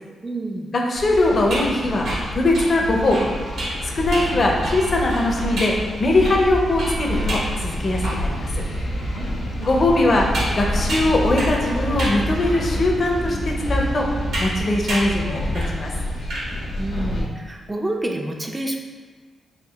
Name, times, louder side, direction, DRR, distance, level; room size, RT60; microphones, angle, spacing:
voice 1, 0.2-0.7 9.0-9.5 16.8-18.8, right 1 dB, 15° right, 2 dB, 0.3 m, -29 dB
voice 2, 0.7-3.3 3.8-8.6 9.6-10.3 10.6-14.1 14.4-15.9, left 2 dB, 40° left, 0 dB, 0.5 m, -21 dB
sound 1, 0.9-17.2, equal, 85° left, 0.9 m, -27 dB
sound 2, 1.5-8.5 9.0-9.1 9.6-11.7 12.0-12.2 12.9-13.0 14.3-14.6 14.9-15.2 15.5-15.8 16.1-16.5, right 1 dB, 80° right, 1.3 m, -30 dB
3.6 x 2.4 x 3.4 m, 1.6 s
cardioid pair, 115°, 0 cm